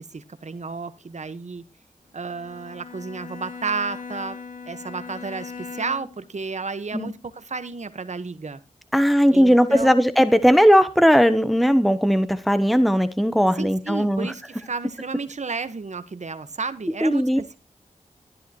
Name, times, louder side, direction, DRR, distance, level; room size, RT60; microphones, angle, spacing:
voice 1, 0.1-1.6 2.1-4.4 4.7-8.6 9.3-10.0 13.5-17.5, right 4 dB, 60° right, 1.3 m, -32 dB
Bowed string instrument, 2.2-6.3, left 5 dB, 80° left, 2.1 m, -39 dB
voice 2, 8.9-14.3 17.0-17.4, equal, ahead, 0.9 m, -18 dB
13.0 x 11.0 x 3.0 m
cardioid pair, 55°, 14 cm